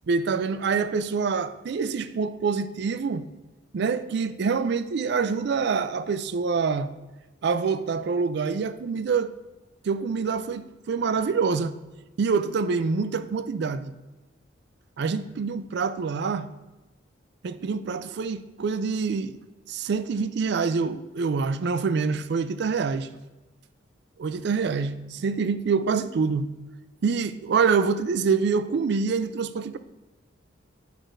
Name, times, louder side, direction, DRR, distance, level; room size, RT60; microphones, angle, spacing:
voice 1, 0.1-3.3 3.7-6.9 7.4-9.3 9.8-11.7 12.2-13.9 15.0-16.5 17.4-19.3 19.7-23.1 24.2-26.5 27.0-29.8, right 5 dB, 60° right, 0.4 m, -26 dB
8.1 x 6.0 x 2.6 m
head